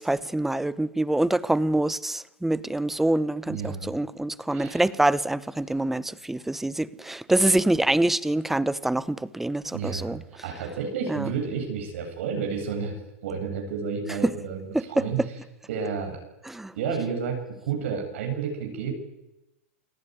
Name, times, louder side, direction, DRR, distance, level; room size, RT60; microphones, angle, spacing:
voice 1, 0.0-10.2 11.1-11.3 14.7-15.0 16.5-16.7, right 1 dB, 5° right, 0.9 m, -25 dB
voice 2, 3.5-3.9 4.5-4.8 9.7-10.2 10.4-12.9 13.2-15.2 15.7-16.2 16.8-18.9, right 6 dB, 65° right, 7.8 m, -31 dB
29.0 x 19.5 x 9.6 m
supercardioid pair, 140°, 7 cm